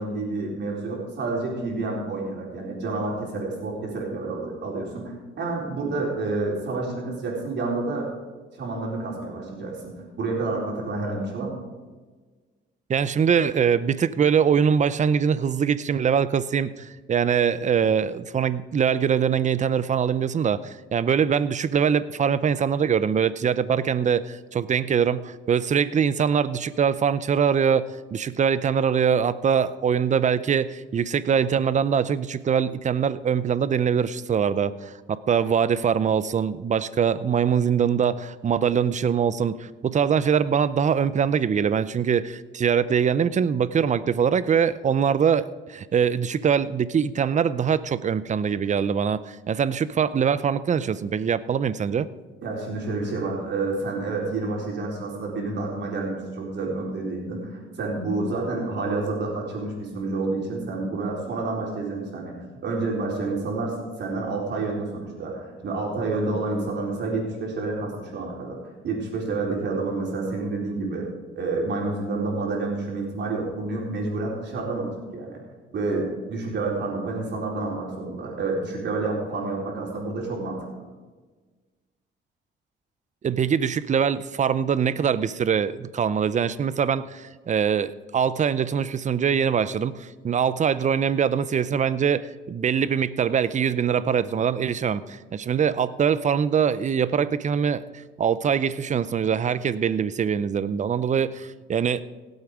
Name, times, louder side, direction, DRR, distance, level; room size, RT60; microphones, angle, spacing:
voice 1, 0.0-8.1 8.6-11.5 52.4-62.3 62.6-68.6 68.8-71.1 71.4-75.4 75.7-80.6, right 3 dB, 65° right, -2 dB, 4.3 m, -29 dB
voice 2, 12.9-52.1 83.2-102.0, right 7 dB, 35° right, 16 dB, 0.6 m, -23 dB
17.0 x 8.1 x 5.0 m, 1.3 s
cardioid pair, 90°, 20 cm